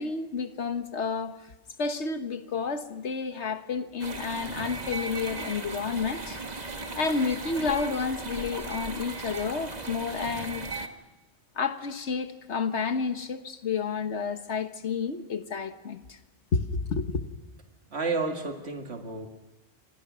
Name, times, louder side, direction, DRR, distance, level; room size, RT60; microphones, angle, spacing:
voice 1, 0.0-1.4 1.8-6.4 7.0-10.7 11.5-16.2 16.5-17.2, left 5 dB, 90° left, 1.7 m, -30 dB
sound 1, 4.0-10.9, right 3 dB, 40° right, 1.7 m, -37 dB
voice 2, 17.9-19.3, right 3 dB, 70° right, 2.3 m, -31 dB
29.5 x 26.0 x 6.2 m
omnidirectional pair, 1.1 m